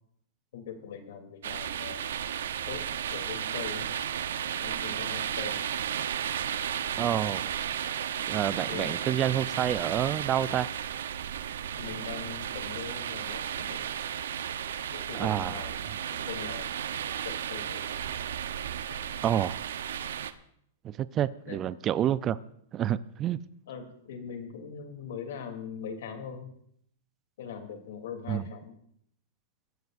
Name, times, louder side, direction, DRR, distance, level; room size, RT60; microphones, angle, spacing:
voice 1, 0.5-2.0 2.7-3.9 4.6-5.6 8.6-9.0 11.8-13.9 14.9-16.8 17.2-17.9 18.9-19.0 21.5-21.6 23.7-26.5 27.4-28.8, left 7 dB, 70° left, 3.0 m, -41 dB
sound 1, 1.4-20.3, right 9 dB, 80° right, 0.9 m, -34 dB
voice 2, 7.0-7.5 8.3-10.7 15.1-15.6 19.2-19.6 20.8-22.4 22.7-23.4 28.3-28.4, right 11 dB, 25° right, 0.5 m, -28 dB
23.0 x 14.5 x 2.6 m
hypercardioid pair, 135°, 0 cm